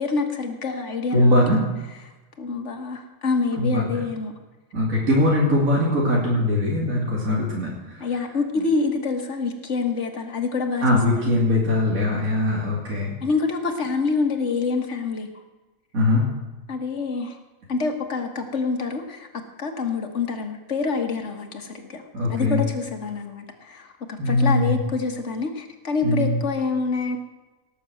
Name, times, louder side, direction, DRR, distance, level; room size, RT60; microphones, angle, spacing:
voice 1, 0.0-1.4 2.4-4.3 6.9-7.0 8.0-10.8 11.1-11.3 13.2-15.3 16.7-17.4 17.7-19.3 19.6-22.0 22.3-27.2, left 4 dB, 60° left, 4 dB, 1.9 m, -26 dB
voice 2, 1.1-1.6 3.6-3.9 4.7-8.1 10.8-13.1 15.9-16.3 22.1-22.6 24.2-24.8 26.0-26.4, left 1 dB, 85° right, -4 dB, 3.2 m, -21 dB
18.0 x 7.0 x 7.8 m, 1.1 s
omnidirectional pair, 1.4 m